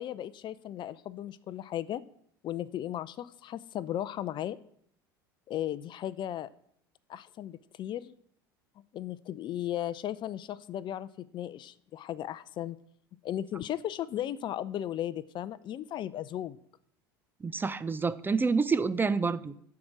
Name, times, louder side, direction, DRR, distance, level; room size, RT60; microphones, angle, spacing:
voice 1, 0.0-2.0 2.4-4.6 5.5-6.5 7.1-8.1 8.9-12.8 13.2-16.6, left 11 dB, 40° left, 0.6 m, -36 dB
voice 2, 17.4-19.6, right 4 dB, 15° right, 0.6 m, -28 dB
12.0 x 4.8 x 7.4 m
hypercardioid pair, 75°, 12 cm